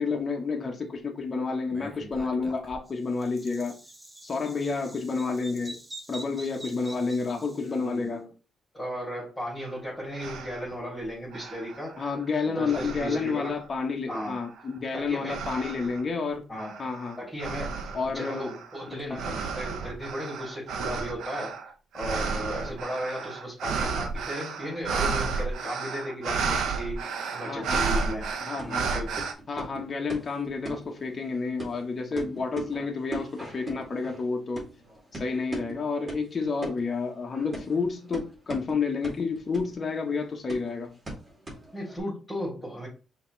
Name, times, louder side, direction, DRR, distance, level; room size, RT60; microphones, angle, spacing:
voice 1, 0.0-3.8 4.2-5.8 6.1-8.2 12.0-16.4 16.8-17.2 17.9-18.5 18.9-19.3 27.4-27.9 28.4-28.9 29.5-34.7 35.1-41.0, left 4 dB, 35° left, 1.0 m, -30 dB
Bird vocalization bird call bird song, 1.7-8.0, right 1 dB, 15° right, 1.0 m, -46 dB
voice 2, 7.6-8.3 8.7-12.0 12.5-13.6 14.1-14.3 14.9-15.5 16.5-16.7 17.2-17.9 18.1-21.5 21.9-27.0 27.3-28.3 28.6-29.2 32.1-32.4 41.7-42.9, equal, 10° left, 2.9 m, -35 dB
sound 1, 9.6-9.7 10.1-10.7 11.3-12.2 12.7-13.5 14.1-14.6 15.3-16.0 16.6-29.3, right 5 dB, 75° right, 0.8 m, -32 dB
sound 2, 27.5-42.0, right 1 dB, 30° right, 2.3 m, -41 dB
5.7 x 3.0 x 3.2 m
cardioid pair, 90°, 0 cm